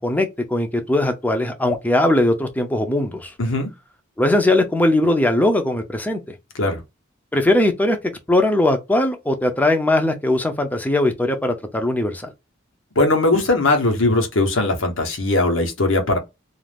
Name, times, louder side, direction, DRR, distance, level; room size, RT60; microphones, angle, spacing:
voice 1, 0.0-3.3 4.2-6.2 7.3-8.0 8.3-12.3, left 1 dB, 10° left, 0.5 m, -19 dB
voice 2, 3.4-3.7 6.5-6.8 13.0-16.2, left 2 dB, 75° left, 1.0 m, -19 dB
2.5 x 2.4 x 3.4 m
head